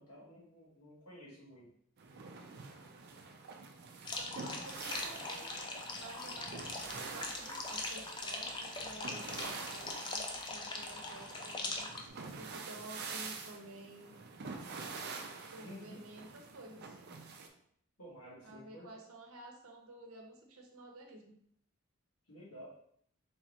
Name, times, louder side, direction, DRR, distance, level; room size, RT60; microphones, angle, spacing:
voice 1, 0.0-1.7 15.6-16.0 18.0-18.9 22.3-22.7, equal, 85° left, -5 dB, 1.5 m, -52 dB
sound 1, 2.0-17.5, right 4 dB, 45° right, 0.4 m, -47 dB
sound 2, 4.0-12.1, left 3 dB, 20° left, 0.3 m, -41 dB
voice 2, 4.2-5.5 5.9-11.9 12.4-14.2 14.6-15.0 15.5-17.0 18.4-21.4, right 2 dB, 75° right, 2 dB, 0.7 m, -52 dB
3.5 x 3.1 x 2.8 m, 0.66 s
head